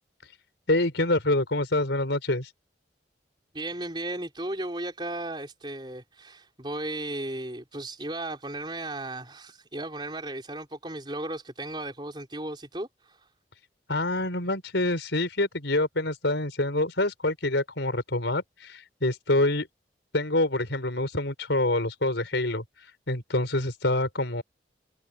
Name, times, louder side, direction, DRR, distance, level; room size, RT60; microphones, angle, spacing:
voice 1, 0.7-2.5 13.9-19.7 20.1-22.6 23.1-24.4, left 2 dB, 85° left, 4.7 m, -26 dB
voice 2, 3.5-13.3, right 1 dB, 25° right, 4.7 m, -35 dB
head